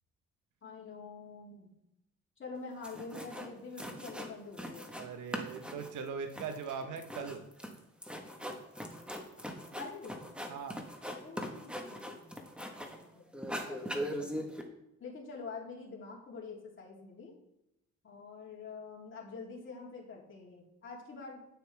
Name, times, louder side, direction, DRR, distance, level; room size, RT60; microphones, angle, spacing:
voice 1, 0.6-1.7 2.4-4.9 9.7-10.2 11.1-12.3 12.6-14.5 15.0-17.3 18.0-21.4, left 4 dB, 40° left, -3 dB, 3.3 m, -46 dB
sound 1, 2.6-2.7 2.8-3.5 3.8-5.1 5.3-13.0 13.3-14.6, equal, 5° right, 1.4 m, -41 dB
voice 2, 5.0-7.4 10.5-10.8, right 6 dB, 75° right, 7 dB, 1.2 m, -40 dB
9.2 x 9.1 x 3.5 m, 0.83 s
cardioid pair, 90°, 30 cm